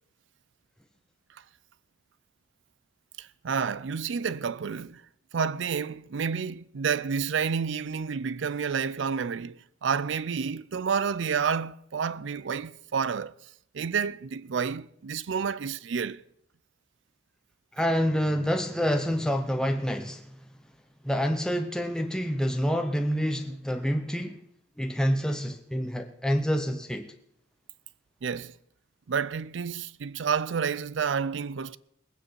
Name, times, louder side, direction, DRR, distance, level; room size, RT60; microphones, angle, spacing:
voice 1, 3.2-5.0 5.3-13.3 13.7-16.2 28.2-28.5 29.1-31.8, right 6 dB, 75° right, 0.5 m, -30 dB
voice 2, 17.7-20.3 21.0-24.4 24.8-27.1, equal, 5° left, 0.7 m, -27 dB
20.5 x 9.3 x 4.6 m
head